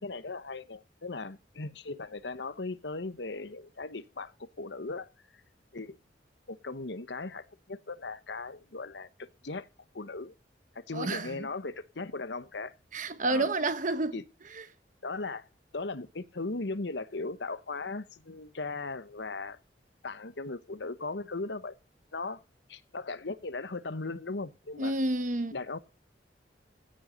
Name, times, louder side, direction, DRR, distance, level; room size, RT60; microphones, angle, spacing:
voice 1, 0.0-5.1 5.7-6.0 6.5-9.7 9.9-10.3 10.7-12.7 13.3-13.5 14.1-14.2 15.0-15.4 15.7-19.6 20.0-21.7 22.1-22.4 22.7-24.9 25.5-25.8, left 3 dB, 70° left, 1.1 m, -38 dB
voice 2, 10.9-11.5 12.9-14.2 14.5-14.6 24.8-25.5, right 2 dB, 45° right, 1.2 m, -30 dB
16.0 x 7.9 x 5.3 m
head